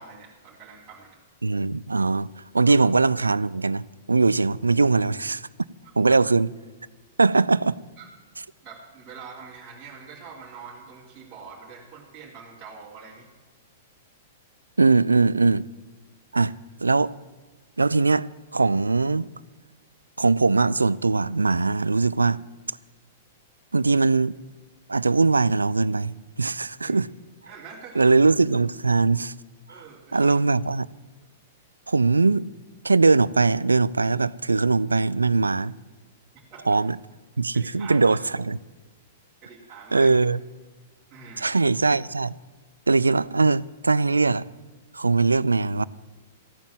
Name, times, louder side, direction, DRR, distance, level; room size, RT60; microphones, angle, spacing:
voice 1, 0.0-1.2 8.0-8.1 8.6-13.3 26.8-27.0 27.5-28.1 29.7-30.3 36.5-36.7 37.5-38.2 39.4-40.1 41.1-41.6, right 5 dB, 25° right, 2.8 m, -44 dB
voice 2, 1.4-2.3 2.5-3.8 4.1-5.4 6.0-6.5 7.2-7.8 14.8-15.7 16.3-16.5 16.8-17.1 17.8-18.3 18.5-19.3 20.2-22.4 23.7-24.4 24.9-27.1 28.0-29.3 30.1-30.9 31.9-32.5 32.8-35.7 36.7-37.0 37.4-38.6 39.9-40.4 41.4-42.3 42.9-44.4 44.9-45.8, right 3 dB, 80° right, 0.4 m, -21 dB
15.0 x 9.0 x 7.6 m
figure-of-eight pair, 105°, 0 cm